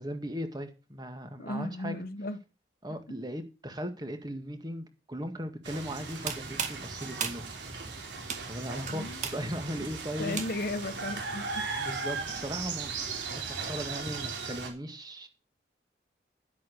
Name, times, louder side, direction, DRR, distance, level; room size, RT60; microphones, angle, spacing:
voice 1, 0.0-2.0 2.8-7.4 8.5-10.4 11.8-12.9 13.2-15.3, equal, 25° right, 1.9 m, -38 dB
voice 2, 1.4-2.4 8.9-9.2 10.2-11.7 13.6-13.7, left 2 dB, 55° left, 1.2 m, -35 dB
sound 1, 5.6-14.7, right 4 dB, 90° right, 3.5 m, -37 dB
sound 2, 6.1-10.9, right 6 dB, 45° right, 1.9 m, -38 dB
11.0 x 8.3 x 6.5 m
head